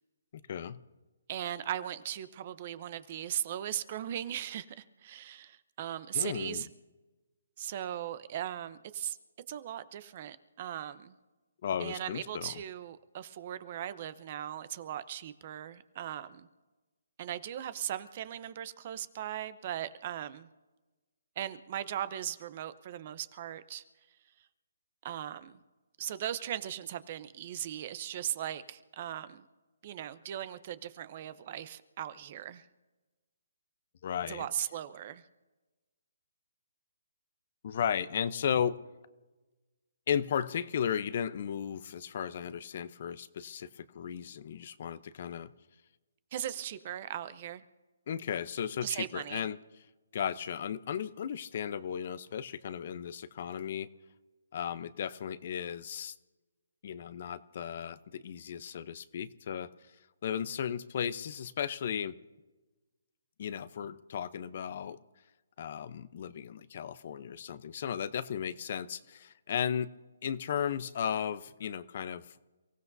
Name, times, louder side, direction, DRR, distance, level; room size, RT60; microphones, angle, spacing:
voice 1, 0.5-0.8 6.1-6.7 11.6-12.6 34.0-34.5 37.6-38.7 40.1-45.5 48.1-49.6 50.1-53.9 54.5-56.1 56.8-59.7 60.2-62.1 63.4-65.0 65.6-69.9 70.2-72.3, left 8 dB, 50° left, 14 dB, 0.7 m, -35 dB
voice 2, 1.3-6.7 7.6-9.2 9.5-11.1 11.8-16.5 17.2-20.5 21.4-23.8 25.0-25.6 26.0-29.5 29.8-32.6 34.3-35.2 46.3-47.6 48.8-49.5, right 11 dB, 40° right, 14 dB, 0.8 m, -38 dB
29.5 x 16.0 x 2.7 m, 1.2 s
hypercardioid pair, 155°, 0 cm